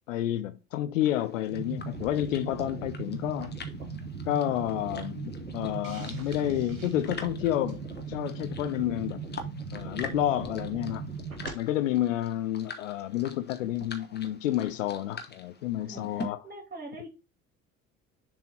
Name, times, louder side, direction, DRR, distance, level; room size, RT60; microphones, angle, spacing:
voice 1, 0.1-3.6 4.3-7.8 8.1-9.2 9.7-11.0 11.5-16.4, left 12 dB, 70° left, 0.7 m, -30 dB
sound 1, 1.0-16.3, left 4 dB, 25° left, 1.3 m, -45 dB
sound 2, 1.5-11.5, right 4 dB, 90° right, 1.1 m, -38 dB
Hiss, 5.8-7.9, right 5 dB, 70° right, 1.7 m, -52 dB
voice 2, 15.8-17.1, right 1 dB, 25° right, 2.7 m, -45 dB
6.9 x 3.9 x 4.2 m
figure-of-eight pair, 55°, 40 cm